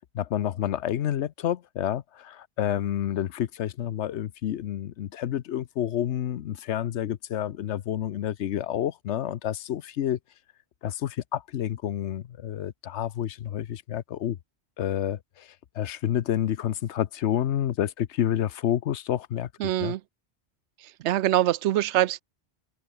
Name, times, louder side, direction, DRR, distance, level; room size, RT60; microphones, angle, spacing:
voice 1, 0.1-10.2 10.8-14.4 14.8-20.0, left 11 dB, 85° left, 1.0 m, -29 dB
voice 2, 19.6-20.0 21.0-22.2, right 13 dB, 85° right, 0.9 m, -23 dB
omnidirectional pair, 1.1 m